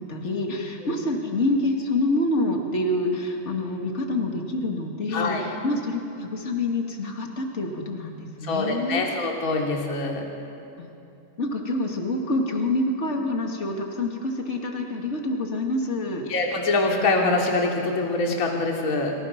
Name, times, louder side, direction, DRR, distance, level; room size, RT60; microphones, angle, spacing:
voice 1, 0.0-9.1 10.8-10.9 11.4-16.2, left 2 dB, 45° left, 1 dB, 0.9 m, -27 dB
voice 2, 5.1-5.4 8.4-10.3 16.3-19.1, left 3 dB, 20° left, -1 dB, 2.9 m, -24 dB
30.0 x 27.0 x 6.0 m, 2.8 s
omnidirectional pair, 5.3 m